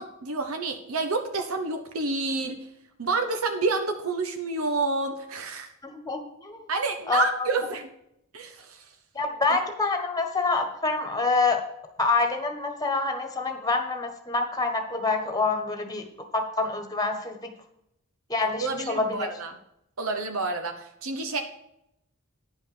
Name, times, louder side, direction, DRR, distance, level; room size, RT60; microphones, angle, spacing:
voice 1, 0.0-2.7 3.0-5.7 6.7-7.9 8.3-8.9 9.5-9.6 18.6-19.6 20.0-21.4, right 3 dB, 80° right, 6 dB, 1.0 m, -29 dB
voice 2, 5.8-6.6 7.1-7.5 9.1-11.6 12.0-16.1 16.3-17.5 18.3-19.3, left 3 dB, 15° left, 5 dB, 1.4 m, -26 dB
10.5 x 5.5 x 6.9 m, 0.78 s
head